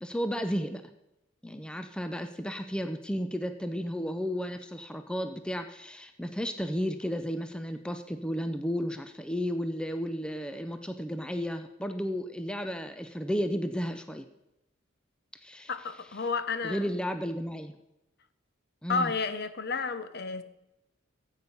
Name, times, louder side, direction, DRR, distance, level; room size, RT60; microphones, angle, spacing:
voice 1, 0.0-0.8 1.4-14.3 15.4-15.7 16.6-17.7 18.8-19.1, equal, 5° left, 8 dB, 0.5 m, -33 dB
voice 2, 15.7-16.9 18.9-20.4, left 4 dB, 55° left, 11 dB, 0.8 m, -31 dB
14.0 x 8.2 x 5.4 m, 0.91 s
head